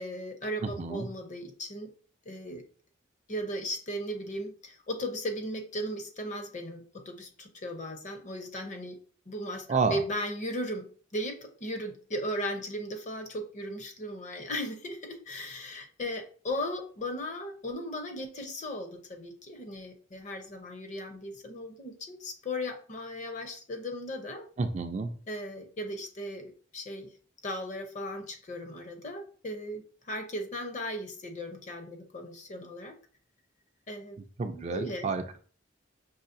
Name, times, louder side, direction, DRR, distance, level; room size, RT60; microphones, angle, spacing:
voice 1, 0.0-1.9 2.3-2.6 3.3-9.0 9.3-24.5 25.3-27.1 27.4-33.0 33.9-34.2 34.5-35.1, equal, 35° left, 6 dB, 0.6 m, -37 dB
voice 2, 0.6-1.1 9.7-10.0 24.6-25.1 34.4-35.4, right 4 dB, 35° right, 7 dB, 0.3 m, -30 dB
5.6 x 3.0 x 2.5 m, 0.41 s
head